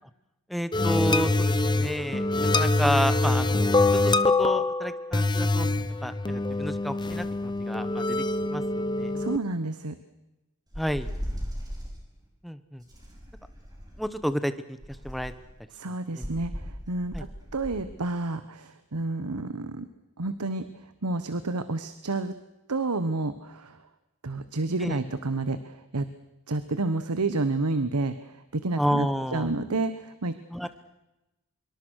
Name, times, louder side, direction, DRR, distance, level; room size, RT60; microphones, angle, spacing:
voice 1, 0.5-5.7 6.0-8.2 8.5-9.1 10.8-11.1 12.4-12.8 14.0-14.8 15.0-15.3 16.1-16.3 17.1-17.2 24.8-24.9 28.8-29.5 30.5-30.7, equal, ahead, 11 dB, 1.1 m, -30 dB
sound 1, 0.7-9.4, left 2 dB, 20° left, 0.8 m, -25 dB
voice 2, 9.1-10.0 15.7-17.3 17.5-19.9 20.2-20.6 21.0-22.3 22.7-23.8 24.2-26.1 26.5-29.1 29.3-30.4, right 2 dB, 90° right, 11 dB, 1.1 m, -30 dB
sound 2, 10.7-12.0 12.9-14.2 14.8-15.5 16.2-17.8, equal, 20° right, 5.4 m, -37 dB
25.0 x 24.0 x 6.4 m, 0.97 s
head